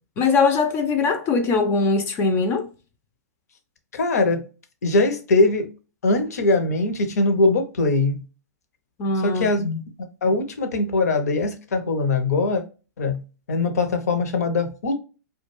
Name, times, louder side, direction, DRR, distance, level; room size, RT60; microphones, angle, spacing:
voice 1, 0.2-2.7 9.0-9.8, left 4 dB, 25° left, 0.4 m, -21 dB
voice 2, 3.9-4.5 4.8-5.7 6.0-8.2 9.2-9.7 10.2-12.6 13.0-13.2 13.5-14.9, left 3 dB, 65° left, 0.6 m, -21 dB
2.3 x 2.2 x 3.0 m
figure-of-eight pair, 110°, 9 cm